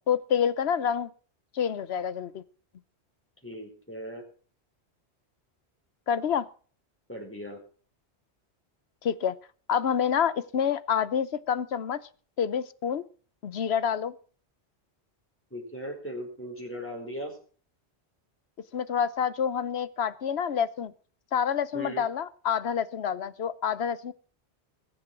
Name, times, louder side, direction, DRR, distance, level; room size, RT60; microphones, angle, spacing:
voice 1, 0.1-1.1 1.5-2.4 6.1-6.5 9.0-9.4 9.7-12.0 12.4-13.0 13.4-14.1 18.7-20.9 21.3-24.1, left 8 dB, 70° left, 17 dB, 1.1 m, -27 dB
voice 2, 3.4-4.2 7.1-7.6 15.5-17.4 21.7-22.0, equal, 10° left, 1 dB, 4.8 m, -38 dB
21.0 x 7.6 x 6.0 m, 0.42 s
omnidirectional pair, 1.1 m